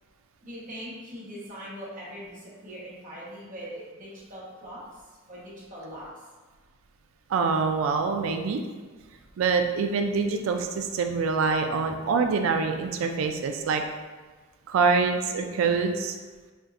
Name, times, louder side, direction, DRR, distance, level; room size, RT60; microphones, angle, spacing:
voice 1, 0.4-4.8 5.3-6.1, equal, 40° right, -7 dB, 1.1 m, -41 dB
voice 2, 7.3-8.6 9.4-13.8 14.7-16.1, right 5 dB, 90° right, 5 dB, 0.4 m, -25 dB
4.4 x 2.6 x 2.4 m, 1.3 s
head